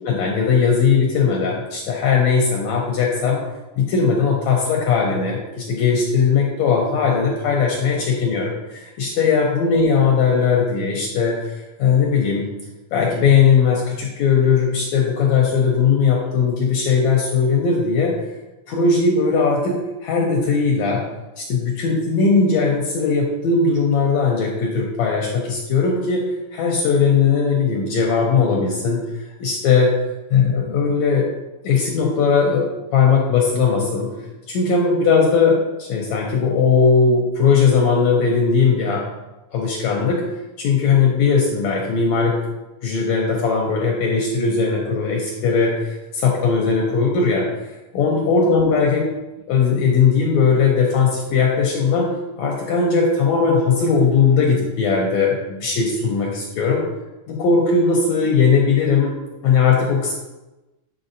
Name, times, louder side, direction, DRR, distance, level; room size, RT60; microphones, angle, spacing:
voice 1, 0.0-3.4 3.8-12.5 12.9-18.2 18.7-21.0 21.4-29.0 29.4-29.9 30.3-31.3 31.6-34.1 34.5-39.0 39.5-40.2 40.6-42.4 42.8-47.5 47.9-49.1 49.5-52.1 52.4-56.9 57.3-59.1 59.4-60.1, left 5 dB, 75° left, -1 dB, 1.8 m, -18 dB
8.1 x 4.7 x 2.6 m, 1.1 s
omnidirectional pair, 3.6 m